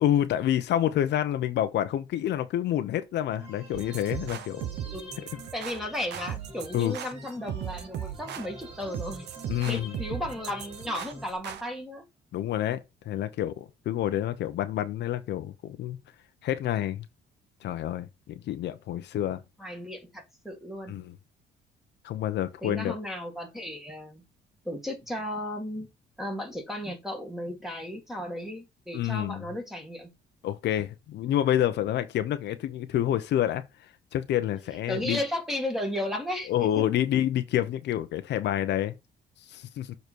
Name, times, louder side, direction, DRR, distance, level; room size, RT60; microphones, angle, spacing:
voice 1, 0.0-4.6 6.7-6.9 9.5-9.9 12.3-12.8 13.1-16.0 16.4-17.1 17.6-19.4 20.9-21.1 22.0-22.9 28.9-29.4 30.4-33.6 34.1-35.2 36.5-38.9 39.5-39.9, left 11 dB, 70° left, 0.8 m, -28 dB
sound 1, 3.4-11.4, right 1 dB, 35° right, 3.3 m, -46 dB
sound 2, 3.7-11.6, right 10 dB, 70° right, 0.9 m, -38 dB
voice 2, 4.8-5.2 5.5-9.3 9.7-12.0 19.6-21.0 22.6-24.2 24.7-25.9 26.2-30.1 34.9-36.8, left 1 dB, ahead, 1.9 m, -34 dB
6.8 x 4.0 x 4.6 m
cardioid pair, 140°, 18 cm